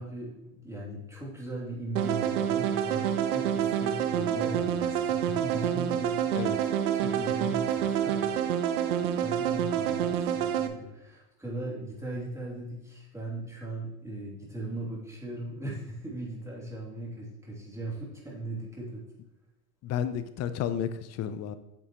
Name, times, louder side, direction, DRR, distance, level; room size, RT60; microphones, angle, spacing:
voice 1, 0.0-6.7 6.9-19.1, right 2 dB, 5° right, -4 dB, 3.0 m, -38 dB
sound 1, 2.0-10.7, right 9 dB, 85° right, 0.9 m, -28 dB
voice 2, 19.8-21.6, left 9 dB, 35° left, 12 dB, 0.7 m, -32 dB
8.9 x 6.9 x 3.1 m, 0.96 s
supercardioid pair, 115°, 44 cm